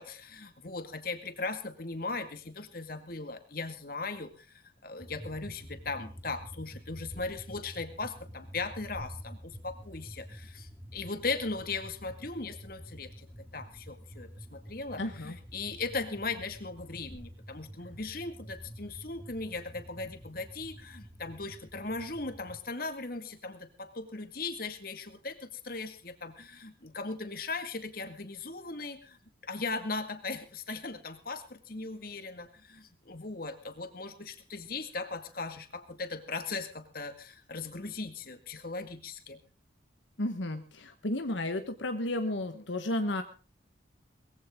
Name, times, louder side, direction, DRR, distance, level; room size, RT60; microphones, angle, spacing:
voice 1, 0.0-4.5 4.8-13.3 13.5-29.2 29.4-39.4, left 3 dB, 50° left, 8 dB, 2.1 m, -38 dB
sound 1, 5.0-22.6, equal, 10° right, 1.9 m, -48 dB
voice 2, 15.0-15.4 40.2-43.2, left 1 dB, 75° left, 7 dB, 1.5 m, -33 dB
21.0 x 15.5 x 3.8 m, 0.34 s
head